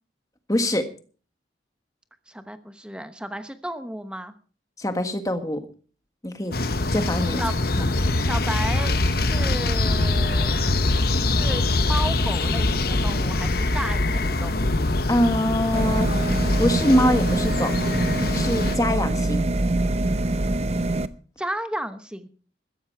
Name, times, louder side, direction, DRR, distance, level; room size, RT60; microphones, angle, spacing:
voice 1, 0.5-0.9 4.8-5.6 6.2-6.5 6.9-7.4 7.8-7.9 15.1-16.2 16.6-17.7 18.3-19.5, left 1 dB, 20° left, 8 dB, 1.5 m, -23 dB
voice 2, 2.3-4.3 6.8-6.9 7.4-7.6 8.2-10.5 11.0-14.7 21.4-22.3, right 1 dB, 5° right, 9 dB, 1.0 m, -33 dB
sound 1, 6.5-18.8, left 2 dB, 50° left, 1.0 m, -23 dB
sound 2, 15.7-21.1, right 2 dB, 35° right, 0.7 m, -24 dB
15.0 x 13.5 x 4.6 m, 0.40 s
head